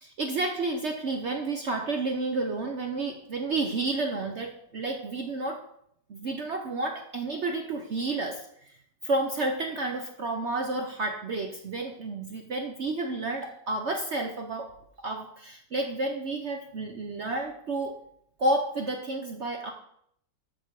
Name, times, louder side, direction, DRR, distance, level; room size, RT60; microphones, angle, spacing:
voice 1, 0.0-5.6 6.1-8.8 9.0-18.0 18.4-19.7, right 2 dB, 55° right, 3 dB, 0.8 m, -31 dB
13.5 x 4.4 x 4.6 m, 0.71 s
omnidirectional pair, 1.9 m